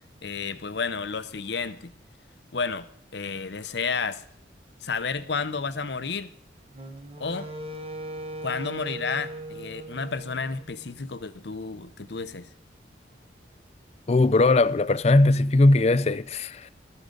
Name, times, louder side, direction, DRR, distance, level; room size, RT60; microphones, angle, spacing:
voice 1, 0.2-1.9 2.5-2.9 3.1-4.2 4.8-6.3 7.2-7.5 8.4-12.5, left 5 dB, 70° left, 0.8 m, -31 dB
Wind instrument woodwind instrument, 6.7-11.0, right 1 dB, 30° right, 1.1 m, -39 dB
voice 2, 14.1-16.7, left 2 dB, 35° left, 0.4 m, -19 dB
13.5 x 13.0 x 3.9 m
head